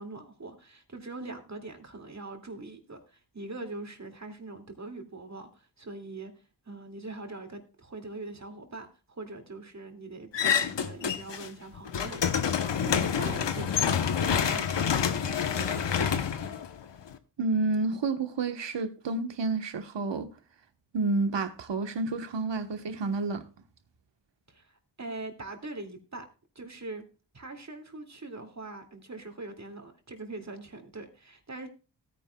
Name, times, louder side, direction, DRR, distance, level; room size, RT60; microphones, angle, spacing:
voice 1, 0.0-16.2 24.5-26.3 26.5-27.1 27.3-31.7, right 2 dB, 40° right, 2.5 m, -42 dB
sound 1, 10.3-11.5 11.8-17.1, left 7 dB, 75° left, 1.1 m, -27 dB
voice 2, 17.4-20.3 20.9-23.5, right 3 dB, 75° right, 1.3 m, -29 dB
16.5 x 9.7 x 2.3 m
wide cardioid pair, 90°, 43 cm